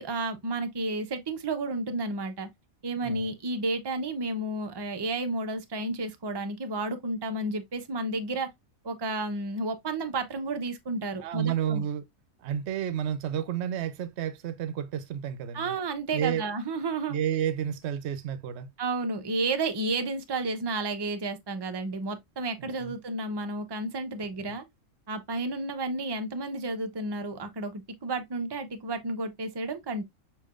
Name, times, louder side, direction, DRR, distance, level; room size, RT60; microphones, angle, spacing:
voice 1, 0.0-2.5 2.8-8.5 8.8-11.8 15.5-17.2 18.8-24.6 25.1-30.0, right 2 dB, 30° right, 0.5 m, -32 dB
voice 2, 11.1-12.0 12.4-15.8 16.1-16.4 17.1-18.7 22.6-22.9 24.2-24.3, right 9 dB, 60° right, 0.9 m, -31 dB
6.5 x 3.0 x 2.4 m
omnidirectional pair, 1.5 m